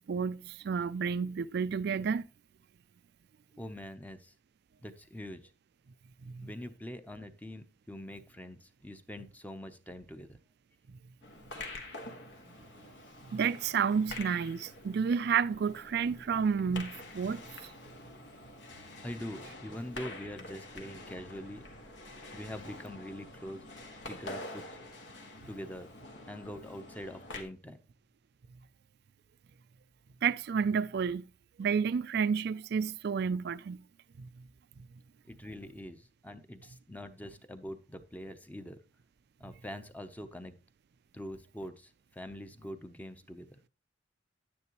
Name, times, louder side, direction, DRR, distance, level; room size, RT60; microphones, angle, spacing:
voice 1, 0.0-2.2 6.3-6.5 13.3-17.4 30.2-31.2 31.6-33.8 34.2-34.3, right 6 dB, 60° right, 0.4 m, -30 dB
voice 2, 3.6-4.3 4.8-5.4 6.4-10.4 19.0-21.6 22.3-23.6 24.1-24.6 25.5-25.9 26.3-27.8 35.3-38.8 39.4-40.5 41.1-43.6, left 1 dB, 10° left, 0.7 m, -44 dB
sound 1, 11.2-27.4, left 2 dB, 70° left, 1.6 m, -47 dB
9.9 x 9.5 x 3.0 m
head